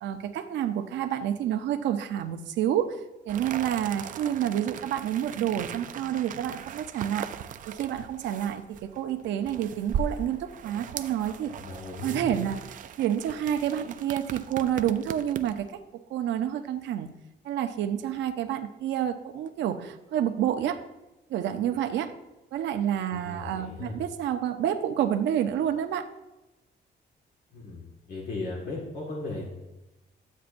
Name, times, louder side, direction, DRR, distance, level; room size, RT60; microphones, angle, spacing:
voice 1, 0.0-3.0 3.3-7.3 7.7-11.5 12.0-15.6 15.9-17.1 17.4-20.8 21.3-22.1 22.5-26.1, right 10 dB, 85° right, 6 dB, 0.7 m, -29 dB
sound 1, 3.3-15.7, right 7 dB, 45° right, 0.4 m, -39 dB
voice 2, 11.4-12.5 23.1-24.0 27.5-27.8 28.1-29.4, left 2 dB, 55° left, -3 dB, 1.8 m, -37 dB
12.0 x 8.4 x 2.6 m, 1.0 s
cardioid pair, 175°, 18 cm